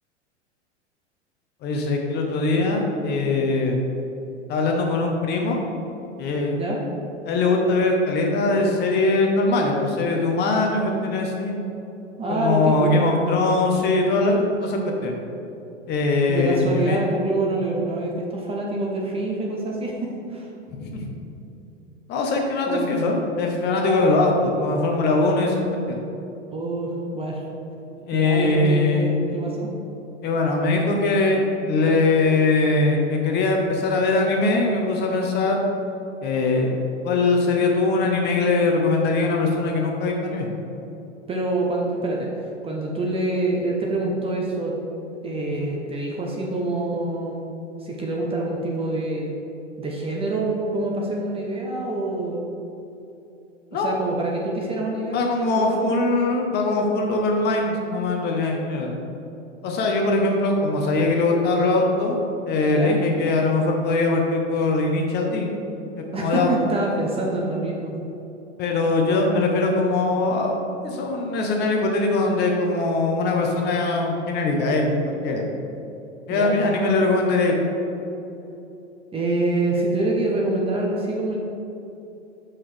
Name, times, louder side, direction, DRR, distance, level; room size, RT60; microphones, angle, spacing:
voice 1, 1.6-3.8 4.5-5.6 6.2-6.6 7.2-11.5 12.3-15.1 15.9-17.0 20.7-21.1 22.1-25.6 25.9-26.0 28.1-29.1 30.2-31.4 31.7-35.6 36.2-36.7 37.0-40.5 45.6-45.7 53.7-53.9 55.1-58.9 59.6-62.2 62.5-65.5 66.1-66.5 68.6-70.6 70.8-75.4 76.3-77.5, left 3 dB, 25° left, 1 dB, 0.9 m, -21 dB
voice 2, 12.2-13.3 16.3-20.5 22.7-22.9 23.8-24.3 26.5-27.4 28.1-29.7 41.3-42.3 42.6-44.7 45.2-47.6 47.8-49.3 49.8-52.4 53.7-55.3 55.6-55.8 62.7-63.0 66.1-68.0 76.3-76.5 79.1-81.4, right 2 dB, 15° right, -2 dB, 0.7 m, -26 dB
6.9 x 5.7 x 3.3 m, 2.9 s
figure-of-eight pair, 105°, 37 cm